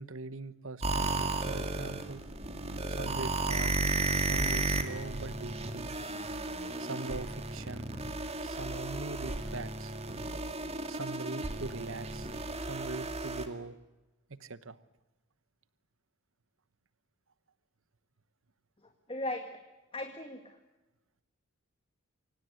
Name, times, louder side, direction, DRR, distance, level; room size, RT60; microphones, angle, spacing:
voice 1, 0.0-2.2 2.9-3.8 4.2-5.9 6.8-7.9 8.4-9.9 10.9-12.3 12.6-13.7 14.3-14.8, right 3 dB, 60° right, 15 dB, 1.1 m, -42 dB
sound 1, 0.8-13.5, right 2 dB, 30° right, 2.2 m, -34 dB
voice 2, 19.1-19.6 19.9-20.6, left 1 dB, 25° left, 5 dB, 1.9 m, -37 dB
25.0 x 18.5 x 9.5 m, 1.1 s
head